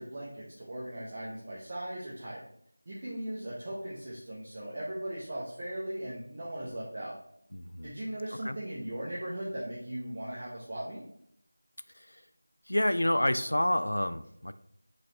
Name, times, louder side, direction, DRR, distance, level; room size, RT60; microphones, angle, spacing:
voice 1, 0.0-2.4 2.9-7.2 7.8-11.0, right 1 dB, 35° right, -6 dB, 0.9 m, -38 dB
voice 2, 7.5-7.9 8.4-8.6 12.0-12.2 12.7-14.5, left 1 dB, 85° left, 12 dB, 0.3 m, -29 dB
4.1 x 3.2 x 3.9 m, 0.71 s
figure-of-eight pair, 170°, 0 cm